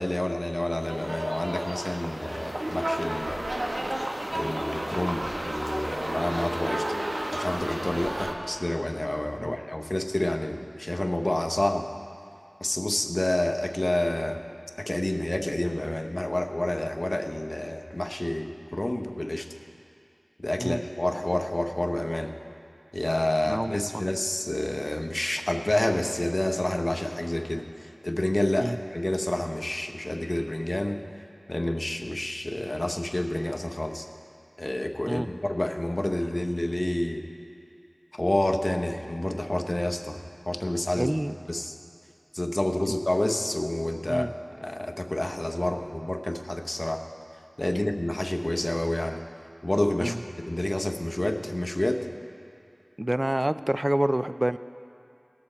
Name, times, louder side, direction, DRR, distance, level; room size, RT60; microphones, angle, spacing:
voice 1, 0.0-3.7 4.3-6.9 7.3-11.8 12.6-14.4 14.8-19.5 20.4-22.3 22.9-31.0 31.5-34.1 34.6-37.2 38.1-41.1 41.5-41.7 42.3-44.3 44.6-47.0 47.6-49.2 49.6-52.1, left 1 dB, 45° left, 4 dB, 0.8 m, -29 dB
sound 1, 0.8-8.3, right 1 dB, 75° right, 1.0 m, -32 dB
voice 2, 23.5-24.0 28.6-28.8 35.1-35.3 40.9-41.3 44.1-44.3 50.0-50.2 53.0-54.6, right 1 dB, 30° right, 14 dB, 0.3 m, -27 dB
18.5 x 6.9 x 4.3 m, 2.5 s
wide cardioid pair, 40°, 0 cm